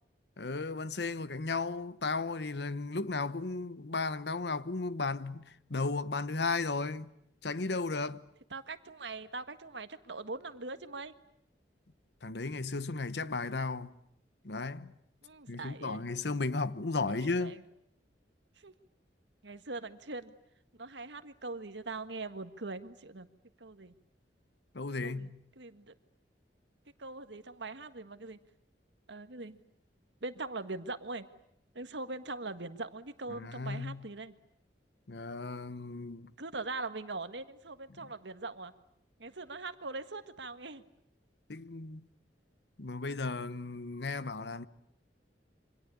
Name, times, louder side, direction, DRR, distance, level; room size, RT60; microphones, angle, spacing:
voice 1, 0.4-7.1 7.4-8.3 12.2-14.0 14.4-14.9 15.5-17.6 24.7-25.4 33.3-34.1 35.1-36.3 37.9-38.0 41.5-42.1 42.8-44.7, left 3 dB, 70° left, 1.0 m, -35 dB
voice 2, 8.5-11.1 15.2-16.0 17.1-17.6 18.6-18.7 19.4-20.3 20.8-23.3 23.6-23.9 25.0-25.3 25.6-25.9 27.0-28.4 29.1-29.6 30.2-31.3 31.7-34.3 36.4-38.7 39.2-40.8, right 3 dB, 80° right, 1.7 m, -41 dB
27.5 x 25.0 x 8.5 m
head